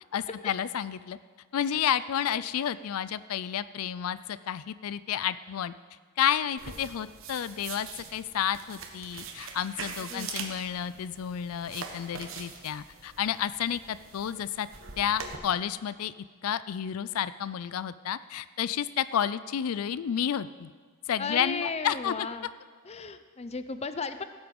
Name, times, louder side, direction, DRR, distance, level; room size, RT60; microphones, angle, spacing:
voice 1, 0.1-1.2 1.5-5.7 6.2-14.7 15.0-16.1 16.4-20.7 21.1-22.3, left 9 dB, 80° left, 16 dB, 0.4 m, -31 dB
sound 1, 6.6-15.4, right 5 dB, 65° right, 1.3 m, -43 dB
voice 2, 10.1-10.5 21.2-22.5 22.8-24.2, left 4 dB, 30° left, 11 dB, 0.5 m, -35 dB
16.5 x 7.9 x 5.3 m, 1.5 s
head